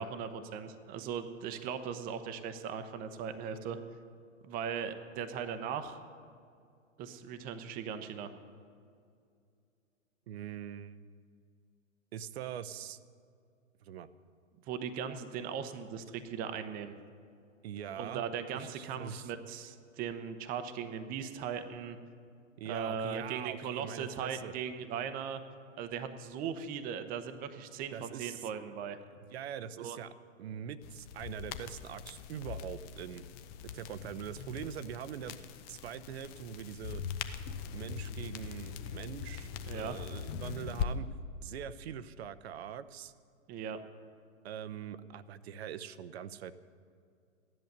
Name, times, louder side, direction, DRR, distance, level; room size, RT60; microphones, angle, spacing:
voice 1, 0.0-3.8 4.4-6.0 7.0-8.3 14.7-16.9 18.0-22.0 22.6-25.4 25.8-29.0 29.8-30.0 39.7-40.0 43.5-43.8, right 7 dB, 20° right, 8 dB, 0.8 m, -38 dB
voice 2, 10.3-11.0 12.1-13.0 13.8-14.1 17.6-18.2 18.5-19.3 22.6-24.5 27.9-28.5 29.3-30.1 30.4-33.2 33.7-35.4 35.7-37.0 37.7-41.1 41.4-43.1 44.4-46.5, right 9 dB, 50° right, 15 dB, 0.8 m, -43 dB
sound 1, 30.8-40.9, left 8 dB, 25° left, 0.7 m, -41 dB
15.0 x 11.0 x 6.7 m, 2.3 s
hypercardioid pair, 125°, 39 cm